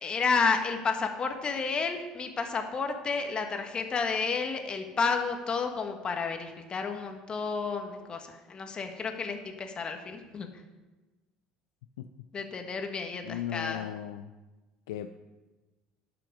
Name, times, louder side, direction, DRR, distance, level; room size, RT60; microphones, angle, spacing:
voice 1, 0.0-10.5 12.3-13.8, left 5 dB, 35° left, 5 dB, 1.5 m, -31 dB
voice 2, 13.2-14.3 14.9-15.1, left 11 dB, 85° left, 8 dB, 0.4 m, -36 dB
11.5 x 5.9 x 5.2 m, 1.2 s
hypercardioid pair, 75°, 3 cm